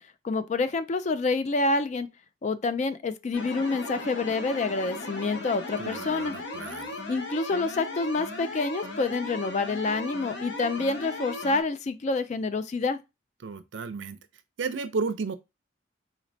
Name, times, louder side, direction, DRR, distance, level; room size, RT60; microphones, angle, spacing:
voice 1, 0.2-2.1 2.4-6.4 7.1-13.0, left 3 dB, 40° left, 0.3 m, -27 dB
sound 1, 3.3-11.6, left 2 dB, 70° left, 1.0 m, -37 dB
voice 2, 5.8-7.0 13.4-14.2 14.6-15.3, right 4 dB, 80° right, 0.5 m, -33 dB
4.0 x 3.1 x 2.6 m
head